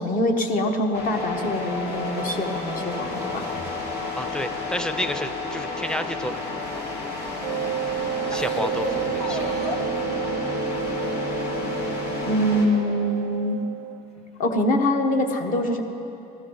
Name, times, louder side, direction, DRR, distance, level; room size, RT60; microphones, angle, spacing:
voice 1, 0.0-3.4 12.2-13.6 14.4-15.8, left 1 dB, 55° left, 3 dB, 1.2 m, -24 dB
Intense-Dark-Guitar, 0.9-12.6, left 3 dB, 80° left, 2.2 m, -31 dB
voice 2, 3.1-3.7 4.2-6.5 8.3-9.7, equal, 5° left, 11 dB, 0.5 m, -31 dB
sound 1, 3.4-5.2 5.6-7.0 7.6-7.7 8.1-10.0 10.6-11.3 11.8-12.6 12.9-13.0 14.2-14.3, left 1 dB, 40° left, 1.7 m, -36 dB
Wind instrument woodwind instrument, 7.4-14.0, right 10 dB, 80° right, 0.4 m, -31 dB
15.5 x 13.5 x 3.9 m, 2.9 s
cardioid pair, 110°, 17 cm